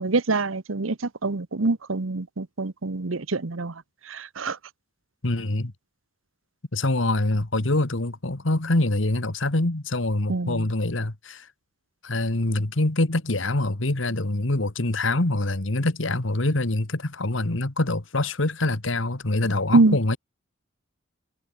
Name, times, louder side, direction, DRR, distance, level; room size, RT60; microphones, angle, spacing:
voice 1, 0.0-4.6 10.3-10.7 19.7-20.0, right 3 dB, 80° right, 1.0 m, -25 dB
voice 2, 5.2-5.7 6.7-11.5 12.0-20.2, left 2 dB, 70° left, 1.8 m, -25 dB
head